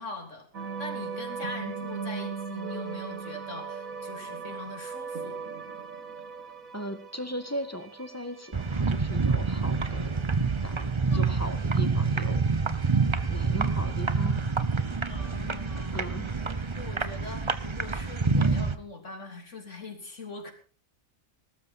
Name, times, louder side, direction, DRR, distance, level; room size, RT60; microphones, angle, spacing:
voice 1, 0.0-5.4 11.1-11.5 15.1-16.0 16.8-20.5, left 3 dB, 60° left, 4 dB, 3.9 m, -42 dB
sound 1, 0.5-15.0, right 5 dB, 75° right, 2.3 m, -40 dB
voice 2, 6.7-10.1 10.6-12.5 13.3-14.4 15.9-16.3, equal, 10° left, 8 dB, 1.8 m, -38 dB
sound 2, 8.5-18.8, right 4 dB, 25° right, 0.8 m, -27 dB
20.0 x 13.0 x 4.2 m, 0.39 s
omnidirectional pair, 1.4 m